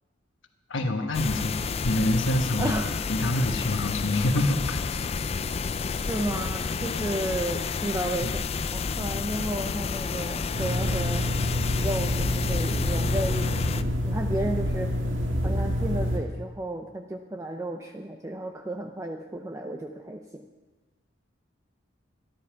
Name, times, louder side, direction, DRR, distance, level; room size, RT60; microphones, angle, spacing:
voice 1, 0.7-1.6 1.8-2.7 3.1-5.1 8.2-8.3, left 1 dB, 75° left, 4 dB, 1.2 m, -26 dB
sound 1, 1.1-13.8, left 5 dB, 30° left, 0.4 m, -30 dB
voice 2, 2.6-2.9 6.1-11.3 11.8-14.9 15.4-20.4, right 1 dB, 15° right, 4 dB, 0.6 m, -33 dB
sound 2, 10.5-16.2, left 1 dB, 85° right, 2.0 m, -27 dB
14.0 x 12.0 x 5.8 m, 1.3 s
head